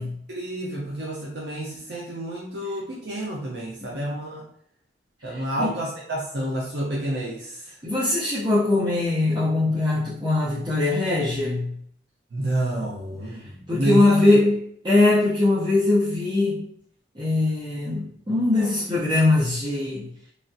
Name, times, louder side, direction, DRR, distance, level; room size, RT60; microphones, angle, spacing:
voice 1, 0.3-4.4 5.2-7.7 12.3-14.4, right 1 dB, 65° right, -3 dB, 0.6 m, -29 dB
voice 2, 5.3-5.8 7.8-11.7 13.7-16.7 17.1-20.1, left 2 dB, 25° right, -11 dB, 0.7 m, -21 dB
3.1 x 2.3 x 2.6 m, 0.65 s
head